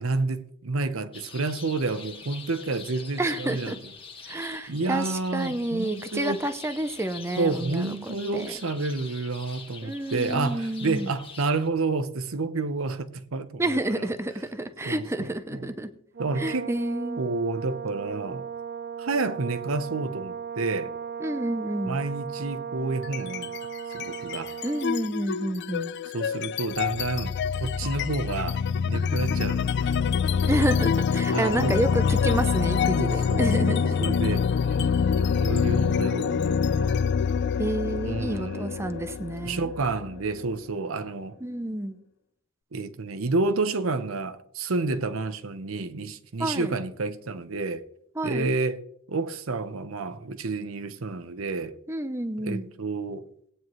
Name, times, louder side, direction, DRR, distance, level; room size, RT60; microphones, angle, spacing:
voice 1, 0.0-3.7 4.3-6.4 7.4-14.1 14.9-15.7 16.2-16.7 17.2-18.5 19.0-20.9 21.8-23.5 23.9-24.5 26.1-29.7 31.3-31.8 33.0-33.7 34.0-37.0 38.0-38.9 39.4-41.4 42.7-47.8 48.2-48.8 49.1-51.8 52.4-53.2, right 3 dB, 75° right, 0.8 m, -30 dB
sound 1, 1.1-11.7, left 5 dB, 25° left, 1.4 m, -45 dB
voice 2, 3.2-3.8 4.3-8.5 9.8-11.1 13.6-15.9 16.4-17.2 21.2-22.0 24.6-25.9 30.5-34.1 37.6-39.7 41.4-42.0 46.4-46.7 48.2-48.5 51.9-52.7, right 1 dB, 15° right, 0.7 m, -29 dB
Brass instrument, 16.1-25.0, right 7 dB, 50° right, 0.5 m, -36 dB
sound 2, 23.0-23.6 23.9-40.5, left 6 dB, 55° left, 0.4 m, -26 dB
18.5 x 9.1 x 3.1 m
head